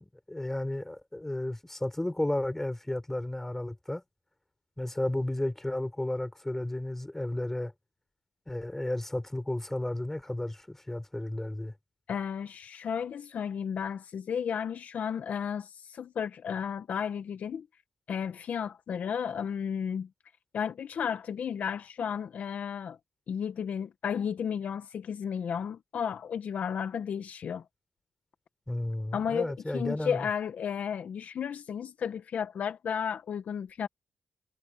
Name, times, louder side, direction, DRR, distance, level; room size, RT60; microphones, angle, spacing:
voice 1, 0.0-4.0 4.8-7.7 8.5-11.7 28.7-30.3, left 1 dB, 10° left, 5.3 m, -33 dB
voice 2, 12.1-17.7 18.1-20.1 20.5-23.0 23.3-27.6 29.1-33.9, left 7 dB, 70° left, 1.1 m, -33 dB
cardioid pair, 70°, 3 cm